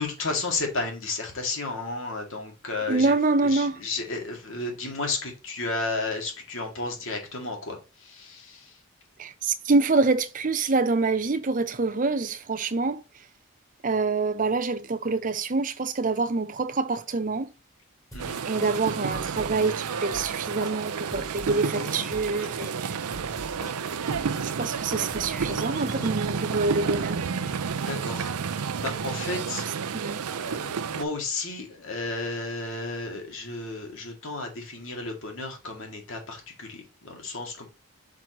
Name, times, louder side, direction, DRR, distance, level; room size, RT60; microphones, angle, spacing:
voice 1, 0.0-3.1 3.4-8.7 18.1-18.4 27.9-29.6 30.4-37.7, left 3 dB, 60° left, 2.1 m, -33 dB
voice 2, 2.9-3.8 9.2-13.0 13.8-17.5 18.5-23.1 24.4-27.2 29.9-30.2, right 3 dB, 35° right, 0.6 m, -26 dB
sound 1, 18.1-26.1, equal, 15° left, 1.7 m, -42 dB
sound 2, 18.2-31.0, right 6 dB, 90° right, 0.5 m, -31 dB
6.1 x 6.0 x 3.0 m
head